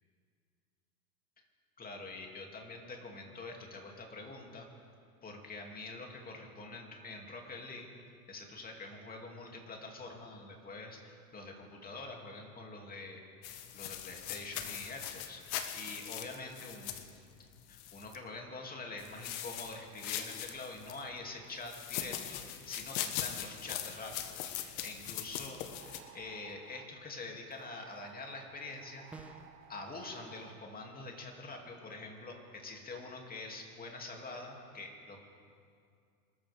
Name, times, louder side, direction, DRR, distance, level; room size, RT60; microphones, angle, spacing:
voice 1, 1.8-4.7 5.2-7.9 8.3-29.4 29.7-35.2, left 3 dB, 20° left, 1 dB, 2.7 m, -46 dB
sound 1, 13.4-18.2 19.0-21.0 21.6-26.0, left 11 dB, 55° left, 1.5 m, -41 dB
sound 2, 25.6-26.9 27.5-30.6, right 11 dB, 60° right, 1.1 m, -56 dB
sound 3, 29.1-29.7, right 3 dB, 5° right, 0.4 m, -49 dB
25.0 x 13.5 x 3.6 m, 2.3 s
hypercardioid pair, 115°, 48 cm